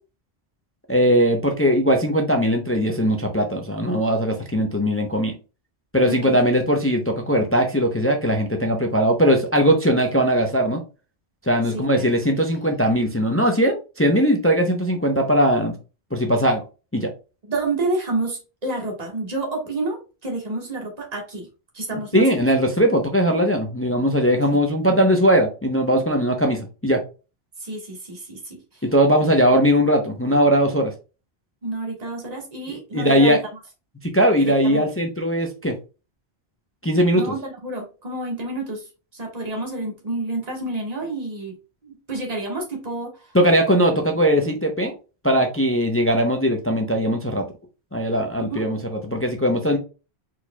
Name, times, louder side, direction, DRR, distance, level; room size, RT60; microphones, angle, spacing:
voice 1, 0.9-5.3 5.9-10.8 11.5-15.8 16.1-16.6 16.9-17.1 21.9-27.0 28.8-30.9 32.9-33.4 34.0-35.7 36.8-37.2 43.3-44.9 45.2-47.4 47.9-48.8 49.0-49.8, equal, 15° left, 0.6 m, -19 dB
voice 2, 6.0-6.4 11.7-12.1 17.5-21.5 21.7-22.4 27.6-28.8 31.6-33.4 34.4-34.8 37.1-41.6 41.8-43.3 48.3-48.6, right 2 dB, 40° right, 1.6 m, -29 dB
4.6 x 4.4 x 2.2 m
omnidirectional pair, 1.1 m